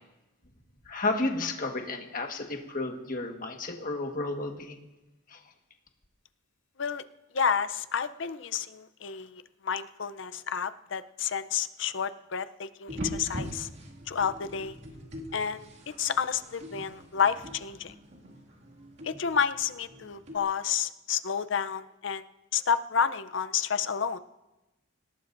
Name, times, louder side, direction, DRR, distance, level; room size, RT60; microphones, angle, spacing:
voice 1, 0.9-4.8 5.3-5.4, left 2 dB, 40° left, 3 dB, 1.5 m, -32 dB
voice 2, 7.3-13.7 14.1-14.8 15.3-15.7 16.0-17.9 19.0-22.3 22.5-24.2, left 7 dB, 60° left, 13 dB, 0.6 m, -30 dB
sound 1, 12.9-20.4, equal, 55° right, 2.2 m, -42 dB
25.5 x 18.0 x 2.6 m, 1.0 s
head